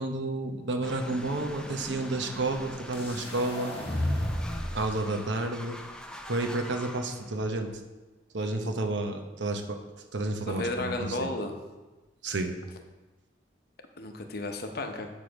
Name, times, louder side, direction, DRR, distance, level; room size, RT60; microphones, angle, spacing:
voice 1, 0.0-3.7 4.7-5.8 6.3-7.8 8.3-9.8 10.1-11.3 12.2-12.6, right 2 dB, 80° right, 5 dB, 0.9 m, -31 dB
sound 1, 0.8-7.8, left 1 dB, 5° left, 0.5 m, -44 dB
sound 2, 2.9-4.9, left 1 dB, 35° left, 1.3 m, -32 dB
voice 2, 10.5-11.5 14.0-15.1, left 2 dB, 60° left, 5 dB, 0.8 m, -33 dB
7.7 x 4.9 x 5.1 m, 1.2 s
head